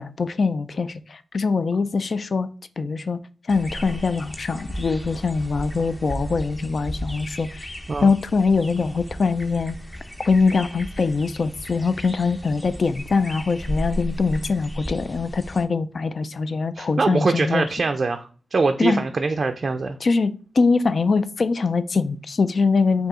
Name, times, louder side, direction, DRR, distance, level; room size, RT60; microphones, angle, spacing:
voice 1, 0.0-2.5 2.8-3.2 3.5-7.7 8.0-9.8 10.3-17.7 18.8-19.0 20.0-23.1, left 4 dB, 60° left, 13 dB, 0.3 m, -23 dB
sound 1, 3.5-15.6, equal, 15° left, 0.6 m, -35 dB
voice 2, 16.8-20.0, right 3 dB, 55° right, 6 dB, 0.3 m, -23 dB
4.7 x 2.7 x 3.6 m, 0.40 s
cardioid pair, 60°, 0 cm